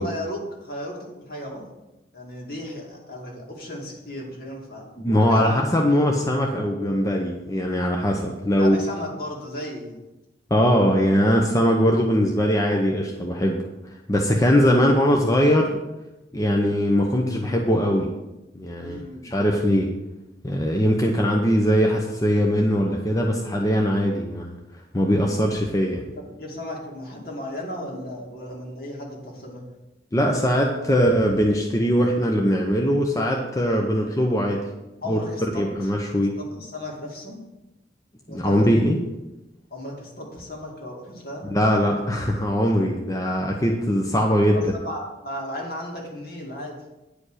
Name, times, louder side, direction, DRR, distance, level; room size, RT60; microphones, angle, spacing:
voice 1, 0.0-1.6 2.1-5.6 8.6-10.0 18.8-19.3 26.1-29.6 35.0-35.9 36.4-37.4 38.3-38.8 39.7-41.5 44.5-46.7, left 1 dB, 55° left, -1 dB, 2.4 m, -35 dB
voice 2, 5.0-8.8 10.5-13.6 14.1-15.8 16.3-18.1 18.5-19.0 19.2-19.9 20.4-24.6 24.9-26.1 30.1-34.6 35.1-35.2 35.6-36.4 38.3-39.0 41.4-44.7, equal, 20° left, 0 dB, 0.8 m, -21 dB
10.0 x 5.2 x 6.3 m, 0.99 s
head